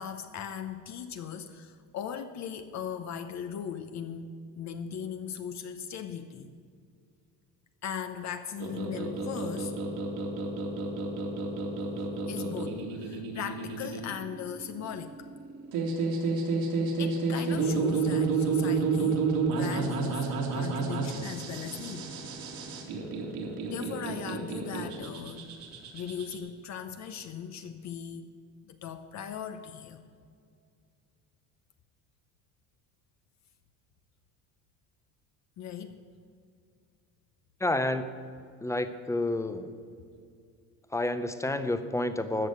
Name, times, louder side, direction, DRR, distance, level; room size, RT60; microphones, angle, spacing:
voice 1, 0.0-6.5 7.8-9.7 11.9-15.3 17.0-22.1 23.7-25.5 25.9-28.3 28.6-30.1 35.6-36.0, left 8 dB, 50° left, 8 dB, 0.8 m, -38 dB
sound 1, 8.6-26.3, right 4 dB, 75° right, 2.6 m, -31 dB
voice 2, 37.6-38.1 38.6-39.7 40.9-42.5, left 1 dB, 10° left, 10 dB, 0.6 m, -29 dB
14.0 x 6.5 x 9.2 m, 2.3 s
cardioid pair, 130°, 36 cm